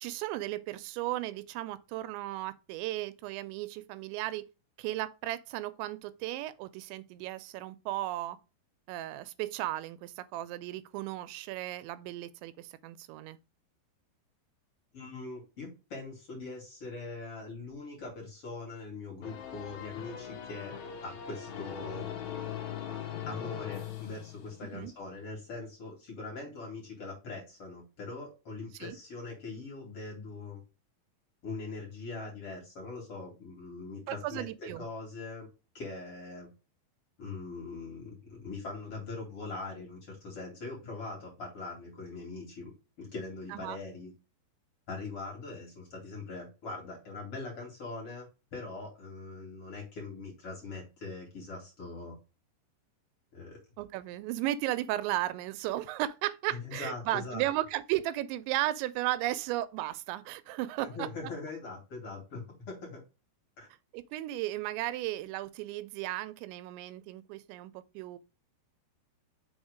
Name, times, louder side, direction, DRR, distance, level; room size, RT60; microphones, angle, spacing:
voice 1, 0.0-4.5 4.8-8.4 8.9-13.4 24.7-24.9 28.8-29.0 34.1-34.9 43.5-43.8 53.8-61.1 63.9-68.2, right 15 dB, 85° right, 2.9 m, -35 dB
voice 2, 14.9-20.8 21.0-22.2 23.3-30.6 31.4-35.5 35.7-36.5 37.2-44.1 44.9-52.2 53.3-53.6 56.5-57.4 60.8-63.0 63.6-63.7, left 3 dB, 35° left, 3.0 m, -42 dB
sound 1, 19.2-24.9, left 9 dB, 75° left, 1.7 m, -40 dB
6.3 x 4.1 x 5.0 m
omnidirectional pair, 5.1 m